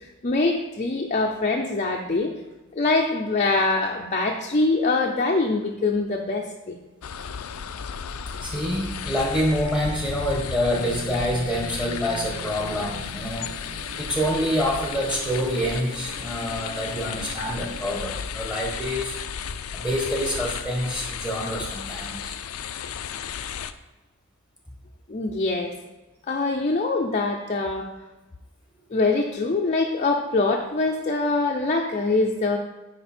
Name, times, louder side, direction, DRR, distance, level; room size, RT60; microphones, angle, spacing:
voice 1, 0.2-2.3 2.7-6.8 25.1-25.7 26.3-27.9 28.9-32.6, left 3 dB, 35° left, 0 dB, 0.6 m, -24 dB
sound 1, 7.0-23.7, left 7 dB, 75° left, 0.5 m, -34 dB
voice 2, 8.4-13.5 14.0-19.2 19.7-22.4, equal, 5° right, -1 dB, 1.3 m, -26 dB
sound 2, 10.7-17.9, right 2 dB, 60° right, 1.3 m, -43 dB
9.2 x 5.1 x 4.4 m, 1.1 s
head